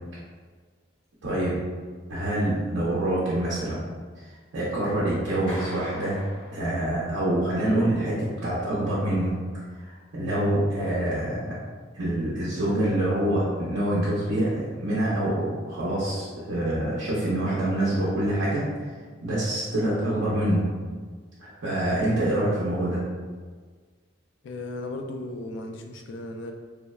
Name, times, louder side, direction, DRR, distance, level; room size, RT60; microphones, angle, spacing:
voice 1, 1.2-1.6 2.1-3.8 4.2-6.2 6.5-9.4 9.9-11.5 11.9-18.7 19.2-20.7 21.4-23.0, right 1 dB, 90° right, -8 dB, 0.6 m, -26 dB
Clapping, 5.5-7.2, equal, 20° left, 1.0 m, -42 dB
voice 2, 24.4-26.5, left 2 dB, 70° left, 4 dB, 0.3 m, -36 dB
3.2 x 2.0 x 2.2 m, 1.5 s
head